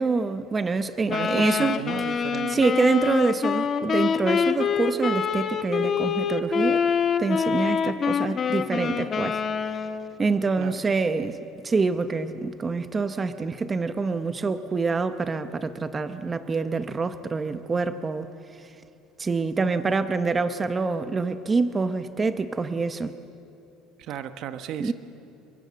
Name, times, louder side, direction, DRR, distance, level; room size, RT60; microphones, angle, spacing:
voice 1, 0.0-1.8 2.5-6.8 7.2-9.4 10.2-11.4 11.6-18.3 18.6-18.7 19.2-23.1 24.8-24.9, right 4 dB, 20° right, 10 dB, 0.9 m, -26 dB
Wind instrument woodwind instrument, 1.1-10.1, left 6 dB, 30° left, 1.2 m, -26 dB
voice 2, 1.1-2.5 10.6-10.8 24.0-24.9, right 10 dB, 55° right, 10 dB, 1.1 m, -34 dB
30.0 x 22.5 x 7.6 m, 2.8 s
cardioid pair, 145°, 0 cm